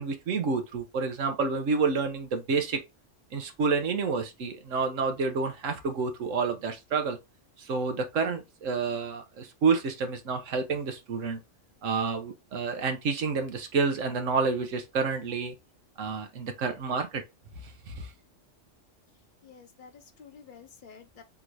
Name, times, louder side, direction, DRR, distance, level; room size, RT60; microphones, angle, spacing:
voice 1, 0.0-2.8 3.3-7.2 7.6-11.4 11.8-15.5 16.0-17.2 17.9-18.1, right 4 dB, 85° right, 1.3 m, -29 dB
voice 2, 19.4-21.2, left 6 dB, 50° left, 0.8 m, -50 dB
3.7 x 2.6 x 4.6 m
omnidirectional pair, 1.3 m